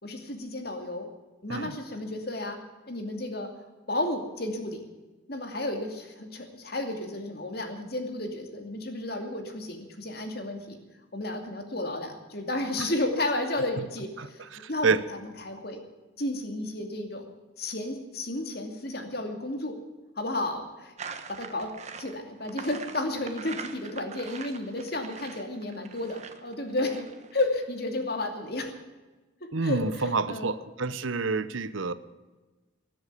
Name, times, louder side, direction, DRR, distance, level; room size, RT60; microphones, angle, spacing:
voice 1, 0.0-1.1 1.4-2.6 2.9-3.5 3.9-4.8 5.3-10.8 11.1-15.8 16.2-17.3 17.6-19.7 20.2-20.9 21.4-27.1 27.3-28.7 29.6-30.5, left 1 dB, 50° left, 4 dB, 2.6 m, -32 dB
voice 2, 14.5-15.0 29.5-31.9, right 4 dB, 85° right, 14 dB, 0.9 m, -28 dB
sound 1, 21.0-27.6, right 5 dB, 35° right, 1.2 m, -43 dB
20.0 x 7.9 x 8.4 m, 1.2 s
head